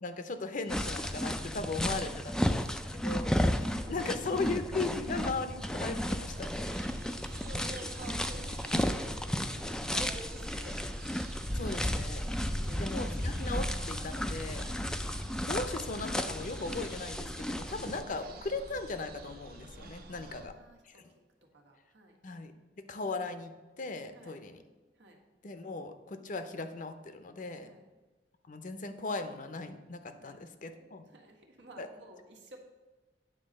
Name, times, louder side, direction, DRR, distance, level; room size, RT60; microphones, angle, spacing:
voice 1, 0.0-3.3 3.9-6.5 11.5-12.2 12.8-14.6 15.4-20.5 20.9-21.0 22.2-24.6 25.4-27.7 28.5-31.0 31.7-31.9, left 3 dB, 50° left, 9 dB, 0.6 m, -38 dB
sound 1, 0.7-18.0, equal, 5° left, 0.3 m, -33 dB
voice 2, 1.5-2.9 3.1-3.2 3.7-4.2 5.0-5.5 6.6-10.8 12.0-12.1 12.5-13.0 14.5-14.8 17.6-17.9 20.1-21.0 21.5-22.2 22.8-23.0 24.1-24.4 25.0-25.2 27.6-27.8 30.1-30.4 30.7-32.6, right 2 dB, 85° right, 1 dB, 1.4 m, -51 dB
sound 2, 6.3-20.5, right 2 dB, 60° right, 0.8 m, -49 dB
9.0 x 3.9 x 6.4 m, 1.2 s
head